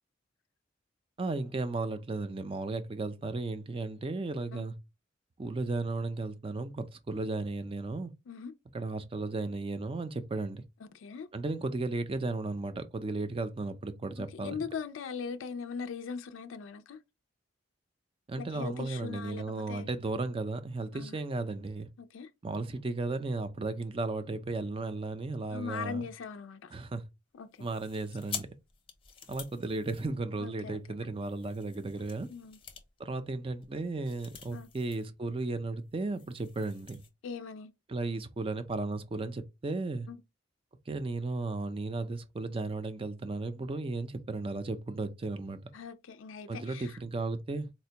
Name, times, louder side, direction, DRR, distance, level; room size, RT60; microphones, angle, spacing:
voice 1, 1.2-4.7 5.4-8.1 8.7-10.6 11.3-14.6 18.3-21.9 22.4-26.1 26.7-27.0 27.6-28.5 29.3-32.3 33.0-37.0 37.9-40.1 40.9-45.7 46.5-47.7, right 3 dB, 30° right, 0.4 m, -35 dB
voice 2, 10.9-11.3 14.2-17.0 18.4-19.9 20.9-21.2 22.0-22.3 25.5-26.7 27.3-27.7 30.4-30.8 32.3-32.6 34.5-34.7 37.2-37.7 40.1-40.2 45.7-47.0, left 6 dB, 80° left, 0.4 m, -40 dB
sound 1, 27.5-30.6 31.2-35.1 35.4-35.5 35.8-37.1, left 7 dB, 30° left, 0.6 m, -47 dB
4.2 x 2.2 x 2.7 m
head